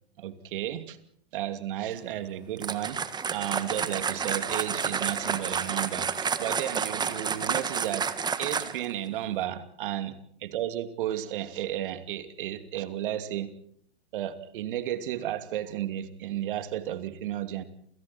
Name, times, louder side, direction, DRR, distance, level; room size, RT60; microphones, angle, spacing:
voice 1, 0.2-1.0 1.3-3.0 3.3-6.1 6.4-8.1 8.4-10.2 10.4-13.5 14.1-17.6, right 12 dB, 55° right, 9 dB, 2.7 m, -33 dB
sound 1, 2.6-8.9, right 6 dB, 15° right, 1.6 m, -30 dB
29.5 x 28.5 x 4.4 m, 0.68 s
figure-of-eight pair, 115°, 32 cm